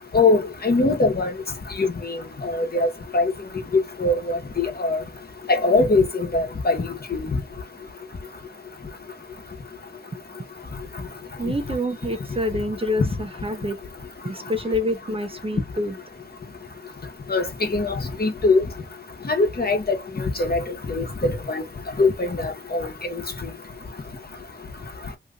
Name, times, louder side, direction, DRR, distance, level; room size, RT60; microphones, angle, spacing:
voice 1, 0.1-1.3 1.8-3.3 3.7-5.0 5.5-7.2 17.3-17.4 17.7-18.6 19.3-19.8 20.2-21.6 22.0-23.2, left 3 dB, 50° left, 1.1 m, -22 dB
voice 2, 11.4-13.8 14.2-15.9, left 1 dB, 25° right, 0.6 m, -27 dB
2.9 x 2.6 x 3.6 m
cardioid pair, 50°, 21 cm